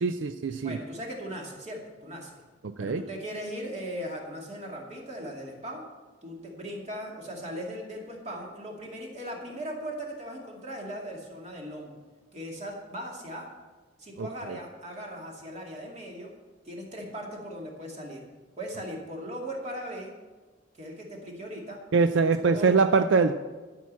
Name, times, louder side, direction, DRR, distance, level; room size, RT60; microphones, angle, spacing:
voice 1, 0.0-0.8 2.8-3.0 14.2-14.3 21.9-23.3, right 4 dB, 80° right, 10 dB, 0.5 m, -23 dB
voice 2, 0.6-2.4 2.8-5.8 6.2-11.9 12.3-13.5 14.0-16.3 16.6-18.3 18.6-20.1 20.8-21.8 22.5-22.7, equal, 35° right, -1 dB, 2.4 m, -38 dB
12.5 x 5.9 x 7.4 m, 1.3 s
head